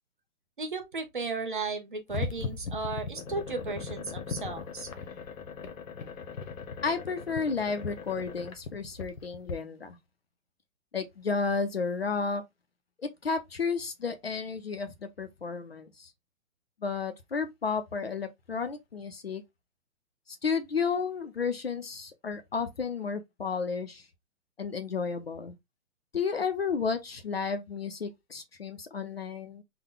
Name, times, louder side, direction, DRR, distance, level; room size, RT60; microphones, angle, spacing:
voice 1, 0.6-4.9, right 3 dB, 40° right, 0.7 m, -35 dB
sound 1, 2.1-9.5, left 5 dB, 70° left, 1.0 m, -39 dB
voice 2, 6.8-10.0 10.9-12.4 13.0-16.1 16.8-19.4 20.3-24.1 24.6-25.6 26.1-29.6, left 5 dB, 50° left, 0.5 m, -32 dB
3.8 x 2.1 x 3.7 m
hypercardioid pair, 180°, 41 cm